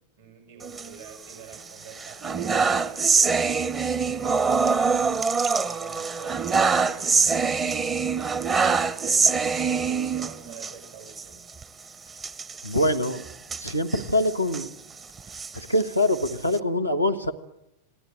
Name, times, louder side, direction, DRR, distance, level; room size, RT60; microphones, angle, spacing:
voice 1, 0.2-3.6 4.0-5.0 5.4-9.3 9.6-11.4, right 6 dB, 60° right, 4 dB, 6.5 m, -46 dB
sound 1, 0.6-1.6 1.9-10.7 11.1-11.2 11.5-11.6 12.2-14.7 15.2-16.6, right 5 dB, 20° right, 1.0 m, -24 dB
voice 2, 12.6-13.3 13.6-14.7 15.6-17.3, left 1 dB, 90° right, 9 dB, 1.6 m, -24 dB
27.0 x 18.5 x 9.2 m, 0.86 s
figure-of-eight pair, 90°, 0 cm